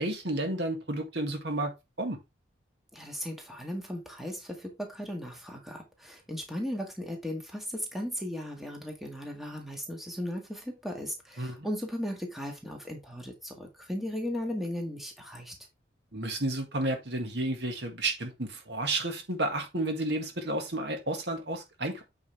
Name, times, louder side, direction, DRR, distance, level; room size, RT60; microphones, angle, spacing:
voice 1, 0.0-2.2 11.4-11.7 16.1-22.0, right 2 dB, 65° right, 1.9 m, -31 dB
voice 2, 2.9-15.5, equal, ahead, 1.9 m, -36 dB
8.8 x 5.2 x 3.4 m
head